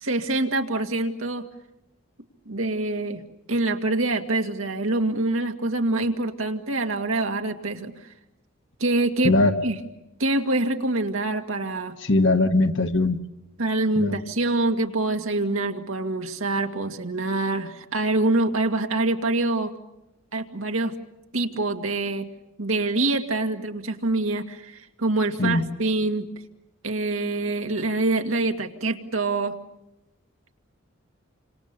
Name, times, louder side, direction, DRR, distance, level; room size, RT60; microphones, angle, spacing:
voice 1, 0.0-1.4 2.5-3.2 3.5-7.9 8.8-9.3 9.6-9.7 10.2-11.9 13.6-19.7 20.3-20.9 21.3-22.3 22.6-26.3 26.8-29.6, right 2 dB, 85° right, 2.2 m, -25 dB
voice 2, 12.0-13.2 14.0-14.2 25.4-25.6, left 2 dB, 65° left, 1.4 m, -20 dB
29.5 x 26.5 x 6.8 m
head